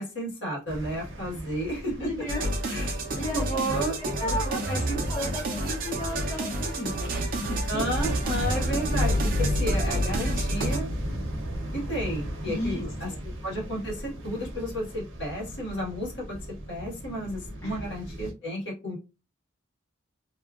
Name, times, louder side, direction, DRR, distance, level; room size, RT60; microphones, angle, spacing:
voice 1, 0.0-2.1 2.7-2.9 3.3-4.0 4.2-5.3 7.7-10.9 11.7-13.1 13.4-16.4 16.7-19.0, equal, 65° left, -4 dB, 1.5 m, -32 dB
sound 1, 0.7-18.3, equal, 80° right, 0.8 m, -35 dB
voice 2, 2.0-2.5 3.1-4.8 5.1-7.2 7.5-7.8 12.5-13.2 17.6-17.8, left 1 dB, 15° left, -3 dB, 0.5 m, -35 dB
sound 2, 2.3-10.8, right 1 dB, 45° right, 0.6 m, -29 dB
2.8 x 2.4 x 2.4 m, 0.29 s
head